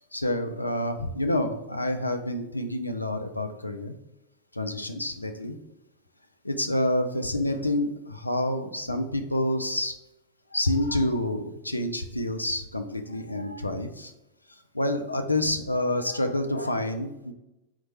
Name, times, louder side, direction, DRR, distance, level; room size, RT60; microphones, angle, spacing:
voice 1, 0.1-4.0 4.5-5.5 6.4-9.9 10.5-14.1 14.7-17.3, left 1 dB, 85° left, 7 dB, 0.4 m, -28 dB
4.5 x 2.2 x 4.2 m, 0.94 s
figure-of-eight pair, 90°, 0 cm